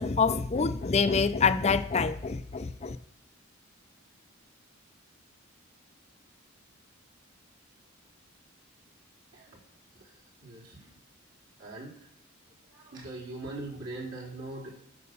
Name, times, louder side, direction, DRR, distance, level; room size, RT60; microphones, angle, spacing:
voice 1, 0.0-3.0, left 5 dB, 35° left, 0.5 m, -26 dB
voice 2, 10.4-10.8 11.6-11.9 12.7-14.7, right 2 dB, 65° right, 4.3 m, -40 dB
11.0 x 6.6 x 6.9 m
head